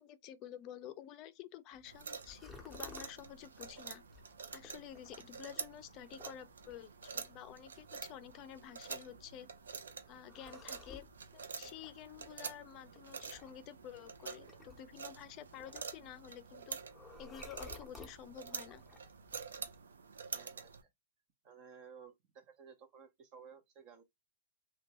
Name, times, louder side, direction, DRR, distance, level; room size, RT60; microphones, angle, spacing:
voice 1, 0.0-4.0 4.5-9.5 10.1-11.0 11.3-16.8 17.2-18.8, left 10 dB, 35° left, 0.4 m, -51 dB
sound 1, 1.7-19.8, left 4 dB, 5° left, 0.7 m, -59 dB
sound 2, 1.9-20.8, right 5 dB, 85° right, 0.5 m, -48 dB
voice 2, 20.3-20.9 21.4-24.0, right 6 dB, 40° right, 0.6 m, -56 dB
2.6 x 2.2 x 2.8 m
hypercardioid pair, 130°, 0 cm